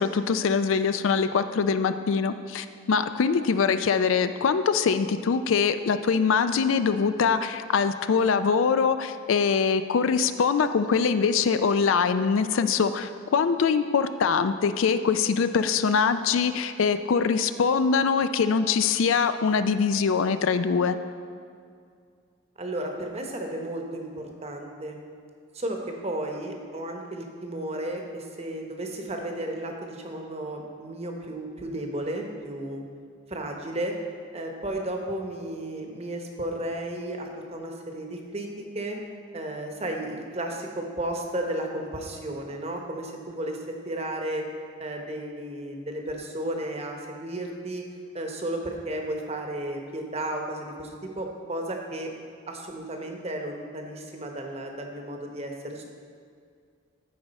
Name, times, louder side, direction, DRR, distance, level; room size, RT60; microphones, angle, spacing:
voice 1, 0.0-21.0, left 5 dB, 70° left, 11 dB, 0.4 m, -23 dB
voice 2, 22.6-25.0 25.5-25.8 26.0-32.8 33.3-33.9 34.3-38.5 38.7-39.0 39.3-44.4 44.8-47.8 48.1-52.1 52.5-55.8, right 1 dB, 30° right, 2 dB, 0.9 m, -33 dB
14.5 x 4.8 x 4.1 m, 2.2 s
head